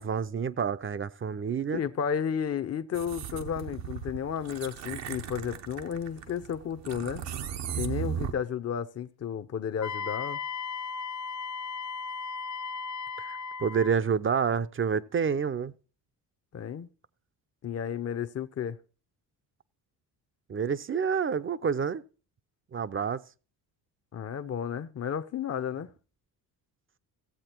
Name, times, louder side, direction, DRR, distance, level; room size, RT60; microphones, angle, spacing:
voice 1, 0.0-1.8 13.2-15.7 20.5-22.0 22.7-23.2, right 6 dB, 30° right, 0.6 m, -28 dB
voice 2, 1.7-7.3 7.8-10.4 16.5-16.9 17.6-18.8 24.1-25.9, left 8 dB, 35° left, 0.7 m, -32 dB
sound 1, 2.9-8.3, right 9 dB, 80° right, 1.1 m, -37 dB
Wind instrument woodwind instrument, 9.8-13.9, left 5 dB, 65° left, 1.6 m, -36 dB
15.0 x 7.6 x 4.4 m
supercardioid pair, 65°, 43 cm